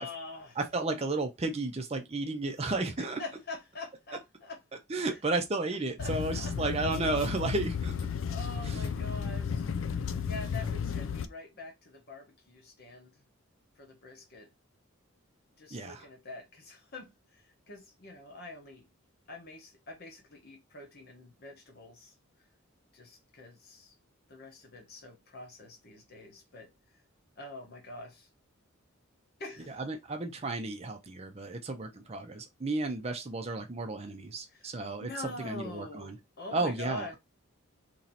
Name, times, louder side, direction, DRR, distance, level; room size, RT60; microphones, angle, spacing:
voice 1, 0.0-0.6 3.0-4.6 5.0-5.2 6.0-6.5 8.3-9.7 10.2-13.2 13.8-14.5 15.6-18.8 19.3-22.1 22.9-23.9 24.3-26.7 27.4-28.3 29.4-29.8 34.5-34.7 35.0-37.1, left 2 dB, 45° left, 1.0 m, -45 dB
voice 2, 0.6-3.2 4.9-8.0 8.6-8.8 15.7-16.1 29.7-36.2 36.5-37.2, right 2 dB, 30° right, 0.5 m, -33 dB
sound 1, 6.0-11.3, left 6 dB, 65° left, 0.4 m, -33 dB
3.0 x 2.8 x 4.0 m
head